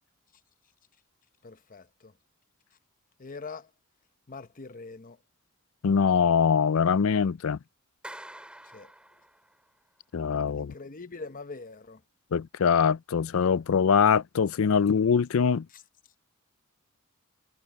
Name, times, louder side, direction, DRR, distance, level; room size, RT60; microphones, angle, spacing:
voice 1, 1.4-2.1 3.2-3.7 4.3-5.2 8.7-8.9 10.6-12.0 15.7-15.8, left 4 dB, 40° left, 0.9 m, -43 dB
voice 2, 5.8-7.6 10.1-10.7 12.3-15.7, left 6 dB, 70° left, 0.4 m, -23 dB
Clapping, 8.0-9.7, right 1 dB, 5° right, 6.4 m, -46 dB
head